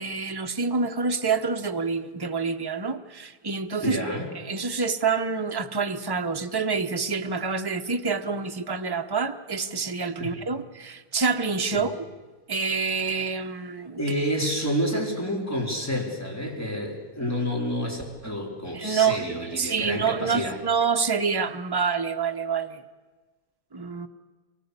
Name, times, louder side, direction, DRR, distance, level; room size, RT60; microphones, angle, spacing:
voice 1, 0.0-4.0 4.3-12.0 12.5-14.0 18.7-22.8 23.7-24.1, right 5 dB, 25° right, 6 dB, 0.4 m, -27 dB
voice 2, 3.8-4.3 10.2-10.4 11.7-11.9 14.0-20.6, equal, 10° left, -2 dB, 4.1 m, -29 dB
23.5 x 19.0 x 8.3 m, 1.3 s
omnidirectional pair, 2.0 m